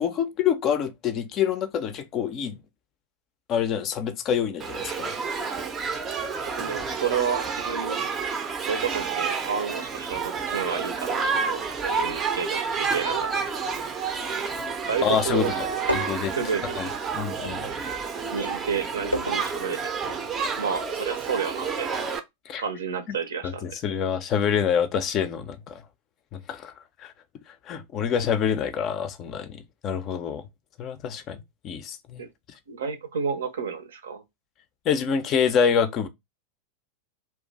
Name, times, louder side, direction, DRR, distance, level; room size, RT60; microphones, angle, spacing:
voice 1, 0.0-2.6 3.5-5.2 15.0-16.3 16.8-17.7 22.5-22.6 23.1-23.2 23.4-25.9 26.3-26.7 27.0-27.1 27.5-30.5 30.8-32.2 34.8-36.1, left 7 dB, 35° left, 0.4 m, -27 dB
Shout / Human group actions, 4.6-22.2, right 5 dB, 25° right, 0.5 m, -30 dB
voice 2, 6.5-8.1 8.7-13.5 14.9-15.8 16.3-16.8 18.3-19.9 20.6-22.0 22.6-23.7 32.2-32.3 32.7-34.2, right 6 dB, 65° right, 0.6 m, -31 dB
sound 1, 15.9-18.0 18.3-20.3 20.6-20.7, equal, 90° left, 0.5 m, -32 dB
2.5 x 2.3 x 3.9 m
figure-of-eight pair, 90°, 0 cm